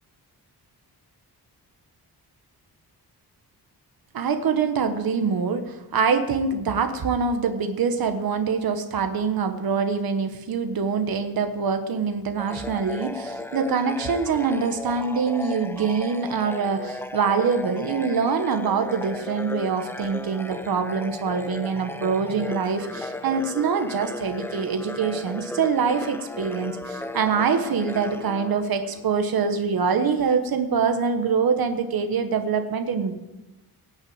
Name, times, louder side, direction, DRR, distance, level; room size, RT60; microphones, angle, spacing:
voice 1, 4.1-33.1, right 5 dB, 65° right, 7 dB, 1.3 m, -24 dB
sound 1, 12.4-29.1, left 1 dB, 5° left, 0.5 m, -36 dB
18.0 x 6.5 x 8.8 m, 1.0 s
wide cardioid pair, 150°, 39 cm